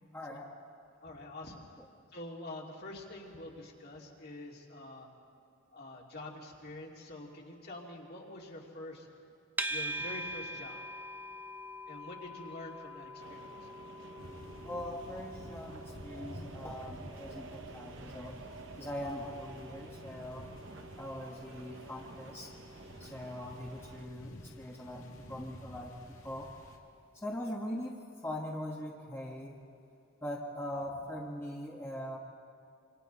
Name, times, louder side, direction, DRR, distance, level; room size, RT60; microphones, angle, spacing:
voice 1, 0.1-0.5 14.6-18.3 18.8-20.5 21.0-22.5 23.0-26.0 26.2-26.5 27.1-29.6 30.2-32.2, left 1 dB, 10° left, -2 dB, 1.3 m, -41 dB
voice 2, 1.0-1.6 2.1-5.1 5.7-9.1 9.7-10.8 11.9-13.7, left 1 dB, 50° left, -2 dB, 2.8 m, -46 dB
sound 1, 9.6-26.8, right 1 dB, 10° right, 0.6 m, -46 dB
sound 2, 13.2-24.0, right 3 dB, 60° right, 0.9 m, -51 dB
sound 3, 14.2-26.8, equal, 85° left, 2.1 m, -51 dB
26.5 x 25.5 x 4.1 m, 2.5 s
head